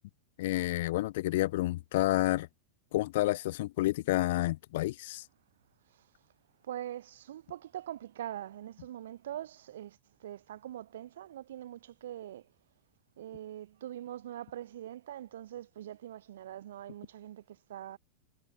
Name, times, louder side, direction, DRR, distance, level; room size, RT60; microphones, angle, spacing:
voice 1, 0.4-2.5 2.9-5.2, left 17 dB, 55° left, 0.7 m, -29 dB
voice 2, 6.7-12.5 13.2-18.0, right 12 dB, 60° right, 3.3 m, -43 dB
figure-of-eight pair, 90°, 0 cm